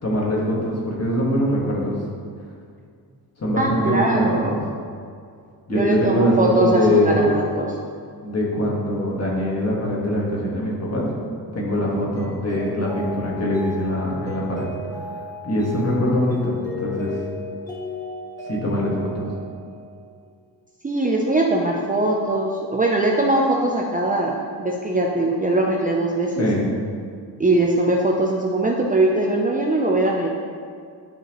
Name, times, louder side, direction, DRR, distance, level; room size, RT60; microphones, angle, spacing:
voice 1, 0.0-2.0 3.4-4.6 5.7-7.3 8.2-11.1 11.5-15.0 15.4-17.1 18.4-19.3 26.4-26.7, equal, 35° left, -4 dB, 1.8 m, -22 dB
voice 2, 3.6-4.5 5.7-7.7 20.8-26.5 27.4-30.3, right 2 dB, 20° right, -2 dB, 0.6 m, -21 dB
Mallet percussion, 12.2-20.3, left 1 dB, 10° left, 1.8 m, -35 dB
10.5 x 4.7 x 3.1 m, 2.2 s
cardioid pair, 105°, 42 cm